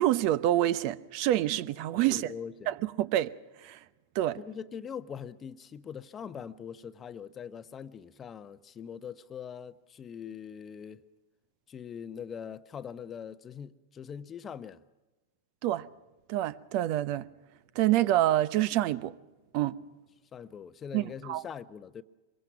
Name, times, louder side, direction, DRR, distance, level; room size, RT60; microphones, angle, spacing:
voice 1, 0.0-2.2 2.7-3.3 3.6-3.8 4.1-4.4 15.6-15.9 16.3-17.2 17.7-19.1 19.5-19.8 20.9-21.4, right 14 dB, 45° right, 0.8 m, -27 dB
voice 2, 2.1-2.7 4.4-11.0 11.7-14.8 20.3-22.0, left 7 dB, 25° left, 0.9 m, -42 dB
24.5 x 22.5 x 6.0 m
figure-of-eight pair, 95°, 0 cm